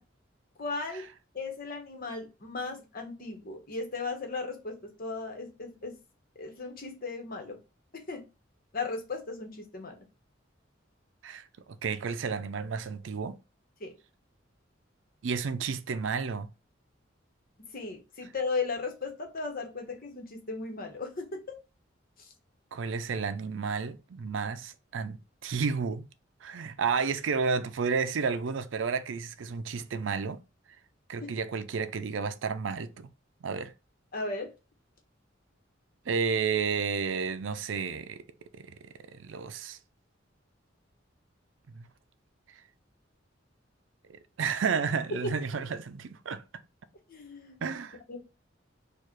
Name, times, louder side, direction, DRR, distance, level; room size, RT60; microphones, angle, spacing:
voice 1, 0.6-1.1 1.3-5.9 6.4-7.6 7.9-8.2 8.7-10.0 13.8-13.9 17.7-21.5 31.2-31.3 34.1-34.5 45.2-45.3 47.1-47.6 48.1-48.2, left 3 dB, 50° left, 1.2 m, -36 dB
voice 2, 11.2-13.4 15.2-16.5 22.7-26.1 26.4-30.4 31.1-33.1 33.4-33.7 36.1-38.3 38.5-39.8 41.7-41.9 44.1-46.4 47.6-48.0, right 5 dB, 80° right, 0.4 m, -32 dB
4.6 x 2.5 x 4.6 m
head